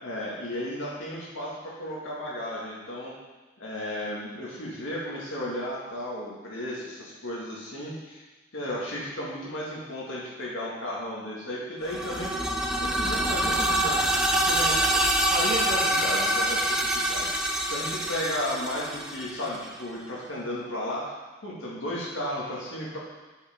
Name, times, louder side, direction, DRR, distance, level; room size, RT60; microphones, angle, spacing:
voice 1, 0.0-3.1 3.6-8.2 8.5-12.3 12.8-15.0 15.3-18.9 19.1-21.1 21.4-23.0, left 1 dB, 75° left, -5 dB, 2.1 m, -34 dB
sound 1, 11.8-19.7, right 1 dB, 5° right, 0.5 m, -26 dB
8.7 x 5.0 x 3.7 m, 1.2 s
head